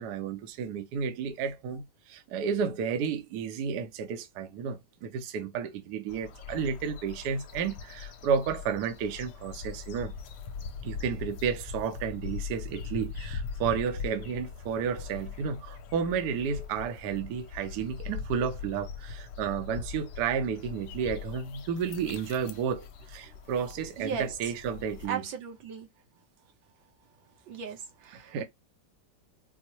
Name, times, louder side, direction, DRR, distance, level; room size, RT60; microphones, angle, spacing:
voice 1, 0.0-10.1 10.8-25.2 28.1-28.4, right 7 dB, 70° right, 1.1 m, -32 dB
sound 1, 6.1-25.1, left 5 dB, 70° left, 1.2 m, -41 dB
voice 2, 24.0-24.3 25.1-25.9 27.5-28.3, right 7 dB, 85° right, 1.6 m, -36 dB
4.4 x 2.1 x 2.8 m
omnidirectional pair, 2.0 m